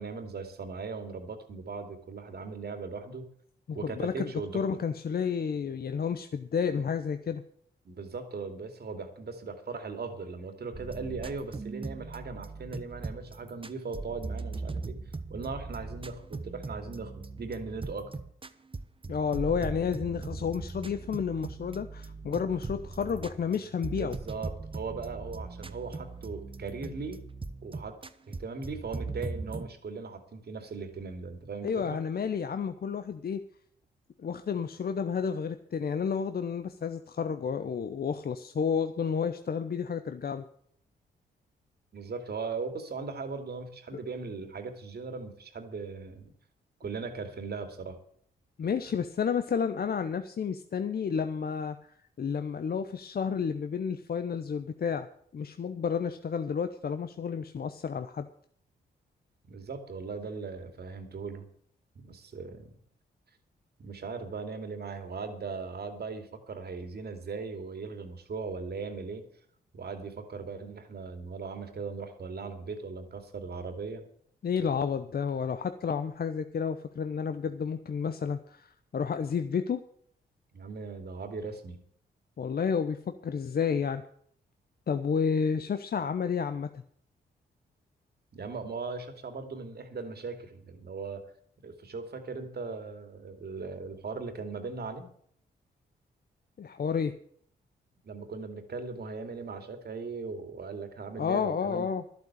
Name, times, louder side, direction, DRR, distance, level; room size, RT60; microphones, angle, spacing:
voice 1, 0.0-3.3 3.7-4.6 7.8-15.0 15.3-18.1 23.9-27.3 27.6-28.0 28.3-32.0 41.9-46.3 46.8-48.0 59.5-61.5 61.9-62.8 63.8-69.3 69.7-74.0 80.5-81.8 88.3-91.3 91.6-95.1 98.0-101.9, right 4 dB, 55° right, 7 dB, 2.6 m, -39 dB
voice 2, 3.7-7.4 19.1-24.2 31.6-33.4 34.2-40.4 43.9-44.0 48.6-55.1 55.3-58.3 74.4-79.8 82.4-84.0 84.9-86.8 96.6-97.1 101.2-102.0, left 6 dB, 55° left, 9 dB, 0.9 m, -31 dB
sound 1, 10.7-29.7, right 3 dB, 25° right, 1.1 m, -40 dB
11.5 x 8.1 x 8.5 m, 0.63 s
supercardioid pair, 55°, 19 cm